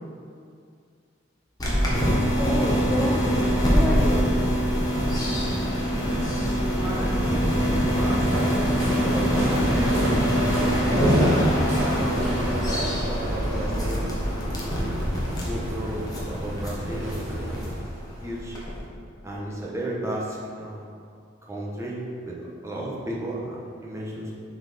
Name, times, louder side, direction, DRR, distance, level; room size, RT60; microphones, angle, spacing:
sound 1, 1.6-18.8, equal, 20° left, 1.4 m, -24 dB
voice 1, 2.3-4.3, equal, 5° left, -6 dB, 0.7 m, -29 dB
voice 2, 6.6-8.6 9.1-10.5 11.0-14.9 15.4-17.8 18.2-18.6 19.2-20.9 21.5-24.3, right 1 dB, 15° right, -5 dB, 1.3 m, -33 dB
sound 2, 8.2-17.8, equal, 90° right, 1.9 m, -33 dB
7.6 x 4.5 x 5.1 m, 2.3 s
head